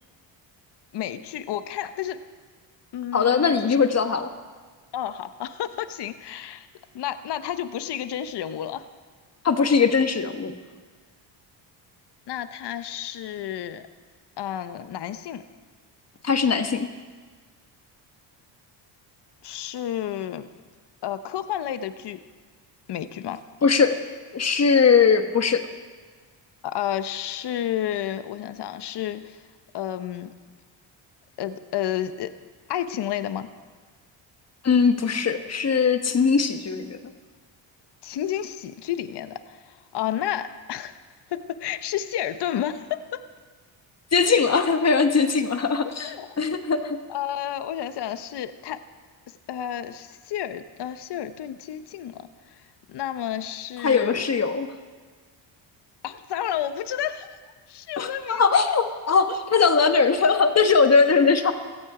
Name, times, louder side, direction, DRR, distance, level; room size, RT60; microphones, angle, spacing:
voice 1, 0.9-2.2 2.9-3.8 4.9-6.7 6.9-8.9 12.3-13.9 14.4-15.5 19.4-20.5 21.0-22.2 22.9-23.4 26.6-29.4 29.7-30.3 31.4-32.3 32.7-33.5 38.0-41.0 41.3-43.2 45.8-46.4 47.1-48.8 49.5-52.6 52.9-54.2 56.0-57.4 57.7-58.5, left 11 dB, 60° left, 11 dB, 1.0 m, -31 dB
voice 2, 3.1-4.3 9.4-10.5 16.2-16.9 23.6-24.0 24.3-25.6 34.6-37.0 44.1-47.0 53.8-54.7 58.0-61.5, left 5 dB, 35° left, 7 dB, 1.3 m, -20 dB
16.5 x 14.0 x 4.9 m, 1.4 s
cardioid pair, 90°, 47 cm